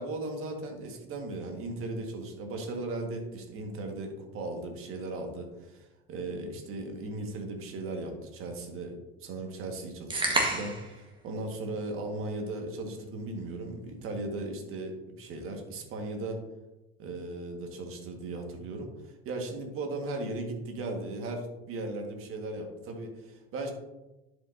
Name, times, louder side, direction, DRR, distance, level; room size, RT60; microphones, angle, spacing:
voice 1, 0.0-8.9 9.2-16.4 17.0-23.7, right 2 dB, 45° right, 3 dB, 1.8 m, -37 dB
sound 1, 10.1-10.9, right 2 dB, 15° right, 1.8 m, -28 dB
11.5 x 5.2 x 2.8 m, 1.0 s
hypercardioid pair, 75°, 31 cm